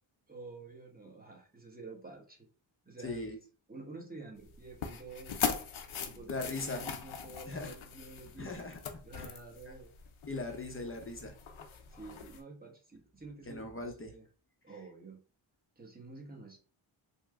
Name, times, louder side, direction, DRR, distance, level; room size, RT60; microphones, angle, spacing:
voice 1, 0.3-2.5 2.8-3.2 3.7-5.5 6.0-8.6 9.0-9.9 11.9-14.3 14.6-15.2 15.8-16.6, right 3 dB, 20° right, 0 dB, 0.9 m, -49 dB
voice 2, 3.0-3.4 6.3-6.8 7.5-7.7 8.3-9.3 9.6-9.7 10.3-11.3 13.5-14.1, left 2 dB, 25° left, 3 dB, 0.6 m, -39 dB
sound 1, 4.4-12.4, left 6 dB, 70° left, 0.6 m, -41 dB
3.1 x 2.1 x 3.5 m, 0.39 s
wide cardioid pair, 85°, 49 cm